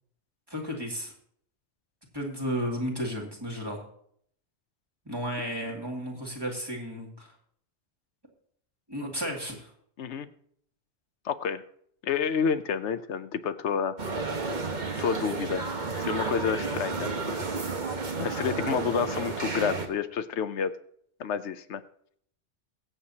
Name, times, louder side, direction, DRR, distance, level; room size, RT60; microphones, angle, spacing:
voice 1, 0.5-1.1 2.1-3.8 5.1-7.3 8.9-9.7, equal, 20° right, -2 dB, 2.5 m, -33 dB
voice 2, 11.2-11.6 12.0-14.0 15.0-15.7 16.0-17.1 18.2-20.7 21.2-21.8, left 7 dB, 90° left, 11 dB, 1.1 m, -29 dB
sound 1, 14.0-19.9, right 4 dB, 45° right, 1.4 m, -32 dB
22.5 x 7.8 x 2.8 m, 0.65 s
omnidirectional pair, 1.1 m